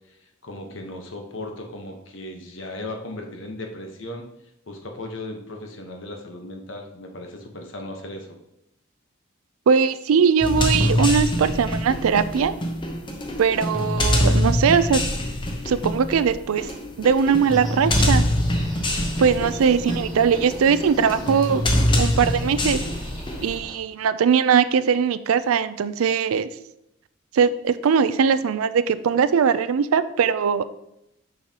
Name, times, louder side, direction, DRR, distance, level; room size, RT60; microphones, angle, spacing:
voice 1, 0.4-4.2 4.7-8.3 19.2-19.5, left 1 dB, 65° left, 3 dB, 1.1 m, -36 dB
voice 2, 9.7-12.5 13.4-15.0 15.6-16.7 17.0-18.2 19.2-21.6 21.9-22.8 23.4-26.5 27.3-30.6, right 6 dB, 90° right, 14 dB, 0.4 m, -20 dB
sound 1, 10.4-23.6, left 1 dB, 25° left, 0.7 m, -24 dB
sound 2, 17.4-23.8, equal, ahead, 2.0 m, -40 dB
6.6 x 6.3 x 2.9 m, 0.83 s
head